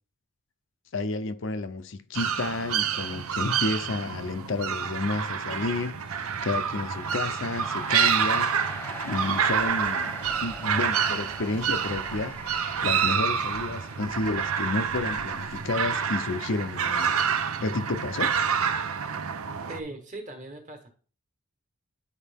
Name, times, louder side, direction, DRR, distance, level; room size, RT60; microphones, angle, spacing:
voice 1, 0.9-10.1 10.4-12.4 12.8-17.3 17.6-18.4, left 3 dB, 60° left, 0.6 m, -31 dB
sound 1, 2.1-19.8, right 7 dB, 80° right, 0.7 m, -28 dB
sound 2, 5.8-17.4, left 2 dB, 10° left, 0.6 m, -45 dB
Musical instrument, 6.9-18.7, right 2 dB, 50° right, 0.8 m, -50 dB
voice 2, 19.7-20.9, right 2 dB, 35° right, 1.5 m, -39 dB
10.0 x 4.5 x 3.5 m
head